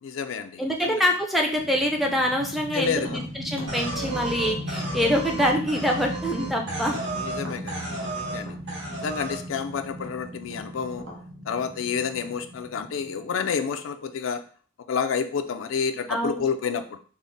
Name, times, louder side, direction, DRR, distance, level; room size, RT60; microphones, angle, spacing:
voice 1, 0.0-1.0 2.7-3.2 7.2-8.6 9.0-11.0 11.5-14.4 14.9-17.0, left 6 dB, 85° left, 9 dB, 0.4 m, -29 dB
voice 2, 0.6-7.0 16.1-16.4, equal, ahead, 0 dB, 0.4 m, -25 dB
sound 1, 1.6-13.8, equal, 45° right, 0.8 m, -37 dB
Tap, 2.9-6.6 6.9-11.2, left 1 dB, 90° right, 1.2 m, -44 dB
sound 2, 3.7-7.4 7.7-8.4 8.7-9.4, right 2 dB, 60° right, 1.4 m, -33 dB
3.6 x 2.1 x 3.9 m, 0.42 s
head